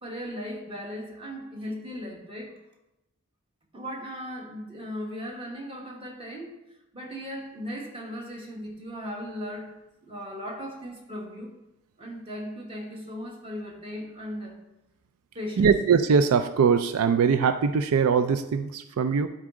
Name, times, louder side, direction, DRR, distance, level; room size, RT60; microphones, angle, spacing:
voice 1, 0.0-2.6 3.7-6.6 6.9-9.7 10.0-11.5 12.0-14.6 15.3-15.7, equal, 25° right, 0 dB, 1.3 m, -37 dB
voice 2, 15.6-19.3, right 6 dB, 85° right, 11 dB, 0.4 m, -22 dB
12.0 x 4.0 x 3.7 m, 0.90 s
head